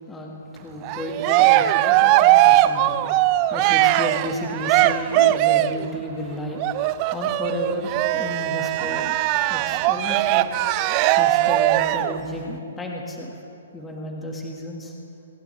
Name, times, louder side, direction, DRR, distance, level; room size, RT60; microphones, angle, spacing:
voice 1, 0.1-9.2 9.5-10.5 11.2-13.4 13.7-14.9, left 1 dB, 10° left, -1 dB, 1.8 m, -32 dB
Cheering, 0.8-5.9 6.6-12.2, right 15 dB, 35° right, 0.4 m, -19 dB
28.5 x 11.0 x 3.4 m, 2.6 s
hypercardioid pair, 135°, 0 cm